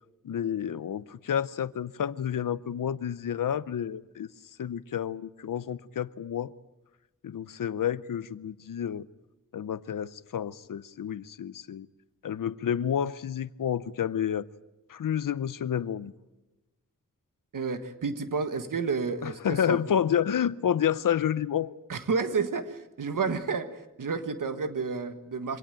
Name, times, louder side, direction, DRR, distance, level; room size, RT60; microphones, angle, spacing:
voice 1, 0.2-4.3 4.6-6.5 7.2-9.1 9.5-11.9 12.2-14.5 14.9-16.1 19.2-21.7, left 9 dB, 90° left, 0.7 m, -29 dB
voice 2, 17.5-19.8 21.9-25.6, right 5 dB, 85° right, 1.6 m, -31 dB
24.5 x 17.5 x 9.0 m
wide cardioid pair, 75°, 31 cm